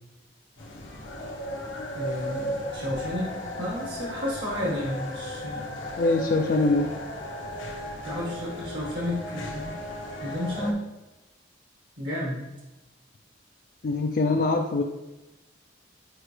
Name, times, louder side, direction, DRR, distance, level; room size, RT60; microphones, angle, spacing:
sound 1, 0.6-10.7, equal, 85° left, 1.1 m, -35 dB
voice 1, 1.9-5.7 8.0-9.8 10.2-10.8 12.0-12.4, left 1 dB, 60° right, -4 dB, 1.2 m, -32 dB
voice 2, 6.0-6.9 13.8-14.8, left 3 dB, 50° left, 4 dB, 0.4 m, -23 dB
7.9 x 4.5 x 3.3 m, 1.1 s
head